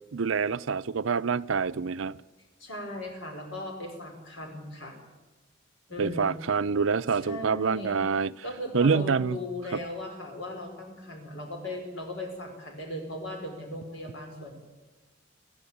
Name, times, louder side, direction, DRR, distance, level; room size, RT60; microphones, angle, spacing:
voice 1, 0.1-2.2 6.0-8.3 8.7-9.4, right 5 dB, 90° right, 0.5 m, -26 dB
voice 2, 2.6-4.9 5.9-6.3 7.1-8.0 8.4-14.5, left 1 dB, 75° left, 4.7 m, -38 dB
30.0 x 10.5 x 8.6 m
head